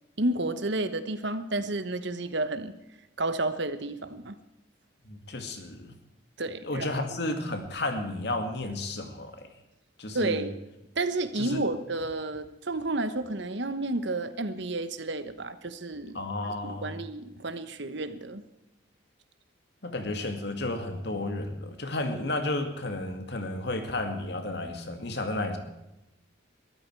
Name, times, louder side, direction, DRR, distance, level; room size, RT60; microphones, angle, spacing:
voice 1, 0.2-2.7 3.2-4.3 6.4-7.3 10.1-10.6 11.0-16.2 16.5-18.4, right 2 dB, 60° right, 11 dB, 1.2 m, -31 dB
voice 2, 5.0-6.0 6.6-9.5 10.0-10.5 11.4-11.6 16.1-16.9 19.8-25.6, left 2 dB, 55° left, 6 dB, 2.3 m, -32 dB
22.5 x 13.5 x 4.7 m, 0.92 s
head